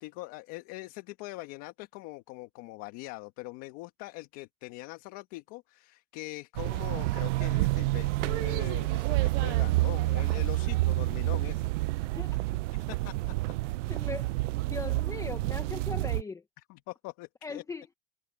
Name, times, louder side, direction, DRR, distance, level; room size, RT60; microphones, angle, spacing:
voice 1, 0.0-11.7 12.7-13.1 13.9-14.0 16.7-17.6, left 21 dB, 45° left, 1.6 m, -42 dB
sound 1, 6.6-16.2, right 20 dB, 75° right, 0.5 m, -29 dB
voice 2, 12.1-12.6 13.9-14.3 14.7-16.4 17.4-17.9, left 4 dB, 10° left, 0.7 m, -39 dB
supercardioid pair, 160°, 37 cm